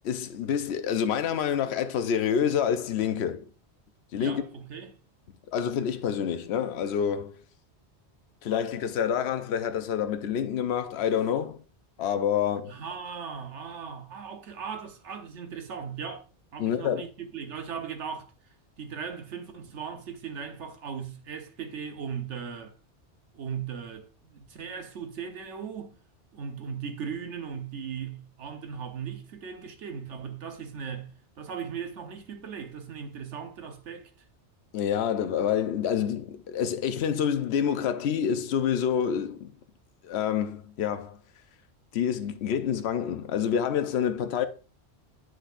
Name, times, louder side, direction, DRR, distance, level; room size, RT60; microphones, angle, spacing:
voice 1, 0.0-3.5 4.1-4.4 5.5-7.3 8.4-11.6 12.0-12.7 16.6-17.0 34.7-39.5 40.0-41.2 41.9-44.5, left 8 dB, 70° left, 0.9 m, -27 dB
voice 2, 4.2-5.0 12.7-16.2 16.5-22.7 23.3-26.0 26.3-34.3, right 7 dB, 85° right, 1.3 m, -38 dB
7.9 x 6.2 x 2.5 m
omnidirectional pair, 1.2 m